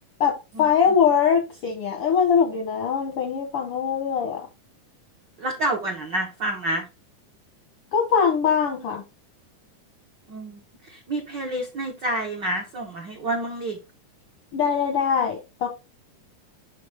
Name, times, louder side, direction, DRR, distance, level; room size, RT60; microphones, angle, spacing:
voice 1, 0.2-4.4 7.9-9.0 14.5-15.7, left 7 dB, 75° left, 1.3 m, -22 dB
voice 2, 5.4-6.8 10.3-10.6 10.9-13.8, right 1 dB, 75° right, 1.0 m, -28 dB
6.5 x 5.2 x 3.4 m
omnidirectional pair, 3.8 m